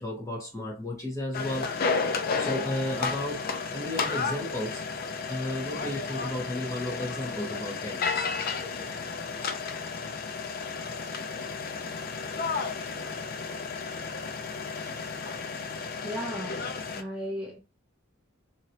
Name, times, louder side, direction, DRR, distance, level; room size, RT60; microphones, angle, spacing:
voice 1, 0.0-1.7 2.4-4.8 5.3-8.3, left 1 dB, 15° left, 1.2 m, -33 dB
sound 1, 1.3-17.0, left 5 dB, 45° left, 0.4 m, -32 dB
voice 2, 16.0-17.6, equal, 5° right, 0.6 m, -36 dB
3.0 x 2.8 x 2.7 m
head